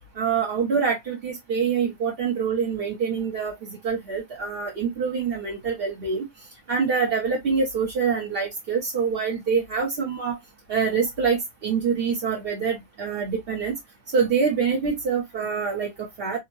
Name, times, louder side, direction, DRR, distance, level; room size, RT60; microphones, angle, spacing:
voice 1, 0.2-3.5 3.8-6.3 6.7-10.4 10.7-13.7 14.1-16.4, right 5 dB, 50° right, 0.8 m, -25 dB
3.6 x 2.0 x 2.8 m
omnidirectional pair, 1.8 m